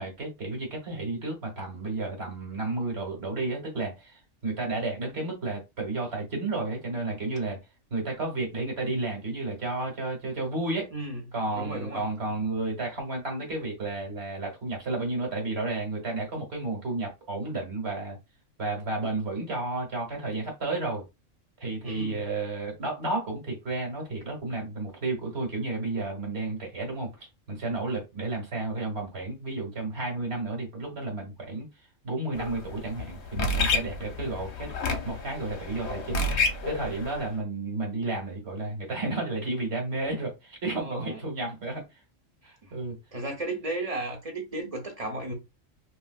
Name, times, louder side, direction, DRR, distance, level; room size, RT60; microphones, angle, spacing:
voice 1, 0.0-7.6 7.9-10.9 11.3-18.2 18.6-21.0 21.6-31.7 32.0-36.3 36.6-41.8 42.4-43.0, right 2 dB, 50° right, 1.6 m, -32 dB
voice 2, 11.5-12.0 21.8-22.2 40.8-41.2 42.5-42.6 43.1-45.3, right 2 dB, 30° right, 0.9 m, -34 dB
sound 1, 32.3-37.3, left 3 dB, 60° left, 1.0 m, -30 dB
3.1 x 2.8 x 2.4 m
omnidirectional pair, 1.4 m